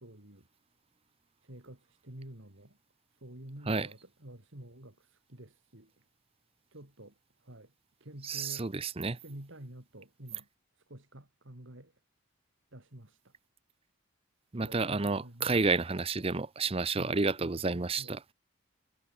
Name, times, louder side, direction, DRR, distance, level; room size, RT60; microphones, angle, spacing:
voice 1, 0.0-0.4 1.5-2.8 3.2-4.9 5.3-5.9 6.7-7.1 7.5-7.7 8.0-8.7 9.2-10.5 10.9-11.9 12.7-13.2 14.6-15.5 17.0-18.1, right 1 dB, 60° right, 3.2 m, -49 dB
voice 2, 8.2-9.2 14.5-18.2, right 3 dB, 25° right, 0.7 m, -30 dB
head